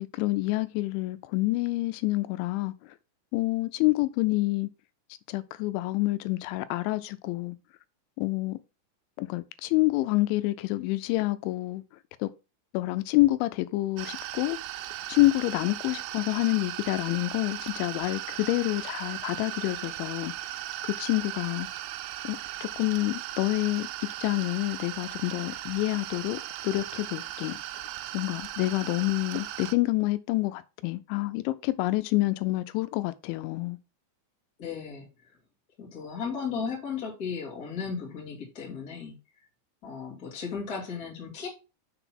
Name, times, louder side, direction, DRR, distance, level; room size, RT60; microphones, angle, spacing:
voice 1, 0.0-3.0 3.3-4.7 5.3-7.6 8.2-8.6 9.2-11.8 12.2-12.3 12.7-14.6 15.1-20.3 20.8-21.7 22.2-23.9 24.2-27.6 28.1-33.8, left 19 dB, 85° left, 2.9 m, -28 dB
sound 1, 14.0-29.7, right 14 dB, 85° right, 2.7 m, -37 dB
voice 2, 34.6-35.1 35.8-39.1 39.8-41.5, left 6 dB, 30° left, 1.7 m, -35 dB
6.7 x 4.0 x 5.8 m
omnidirectional pair, 5.3 m